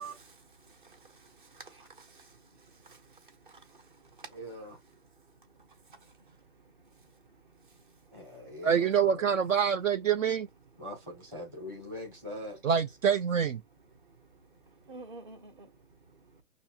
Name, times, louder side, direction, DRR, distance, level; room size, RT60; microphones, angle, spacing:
voice 1, 0.0-8.7 10.6-10.8 13.6-16.4, right 3 dB, 35° right, 0.8 m, -54 dB
voice 2, 4.3-4.8 8.1-9.4 10.8-12.6, equal, 10° right, 0.8 m, -42 dB
voice 3, 8.6-10.5 12.6-13.6, right 7 dB, 60° right, 0.5 m, -26 dB
5.8 x 2.5 x 2.8 m
hypercardioid pair, 165°, 45 cm